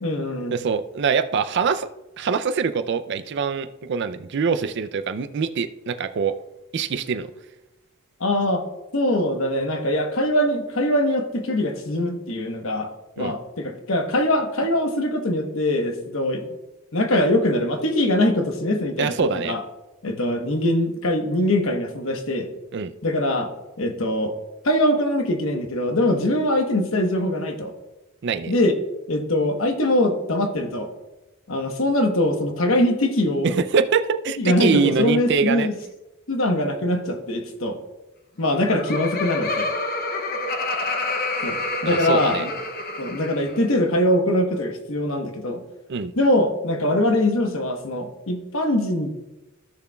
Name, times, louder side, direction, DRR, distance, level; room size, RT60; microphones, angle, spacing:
voice 1, 0.0-0.6 8.2-8.6 8.9-12.9 13.2-16.5 16.9-19.6 20.0-22.5 23.0-23.5 23.8-24.4 24.6-27.7 28.5-28.7 29.1-30.9 31.5-33.6 34.4-35.7 36.3-37.8 38.4-39.7 41.4-42.5 43.0-45.6 46.2-49.1, left 1 dB, 70° left, 5 dB, 1.1 m, -22 dB
voice 2, 0.5-1.9 2.2-6.4 6.7-7.3 13.2-13.3 19.0-19.6 22.7-22.9 28.2-28.5 33.4-35.7 41.9-42.5 45.9-46.1, right 5 dB, 55° right, 11 dB, 0.4 m, -24 dB
Laughter, 38.4-43.6, left 2 dB, 45° left, 0.7 m, -28 dB
14.5 x 6.8 x 2.3 m, 1.0 s
head